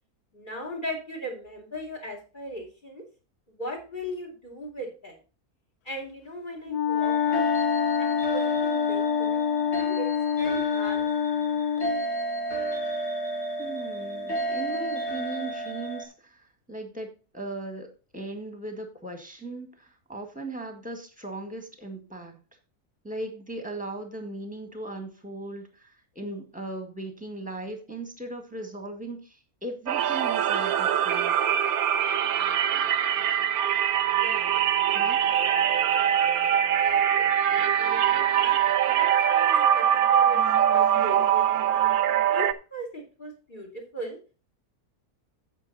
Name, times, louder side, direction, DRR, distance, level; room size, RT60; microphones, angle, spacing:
voice 1, 0.3-3.0 3.6-5.2 5.8-7.5 8.0-9.4 9.8-10.1 10.4-11.0 34.1-35.4 36.0-37.3 37.8-38.6 38.9-41.9 42.3-44.2, equal, 30° left, 2 dB, 3.1 m, -38 dB
Wind instrument woodwind instrument, 6.7-12.1, left 9 dB, 85° left, 1.3 m, -26 dB
sound 1, 7.0-16.1, right 2 dB, 45° left, 2.1 m, -32 dB
voice 2, 13.6-17.1 17.3-22.4 23.0-31.4 34.9-35.2, right 2 dB, 5° right, 5 dB, 1.7 m, -38 dB
sound 2, 29.9-42.5, right 9 dB, 75° right, 1.1 m, -23 dB
9.1 x 7.6 x 4.1 m, 0.33 s
omnidirectional pair, 1.6 m